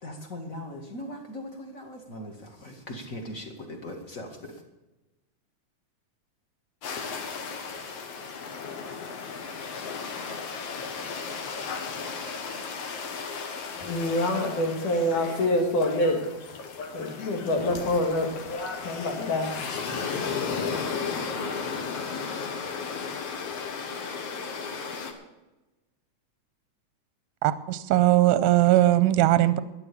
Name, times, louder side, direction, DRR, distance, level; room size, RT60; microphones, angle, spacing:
voice 1, 0.0-2.3 2.6-4.4, left 1 dB, 30° left, 1.8 m, -39 dB
sound 1, 6.8-25.1, left 5 dB, 60° left, 2.3 m, -35 dB
voice 2, 13.8-16.3 16.8-19.6 20.0-20.2, left 1 dB, 85° left, 3.6 m, -26 dB
voice 3, 27.4-29.6, right 15 dB, 80° right, 1.7 m, -20 dB
13.0 x 9.7 x 6.9 m
omnidirectional pair, 3.4 m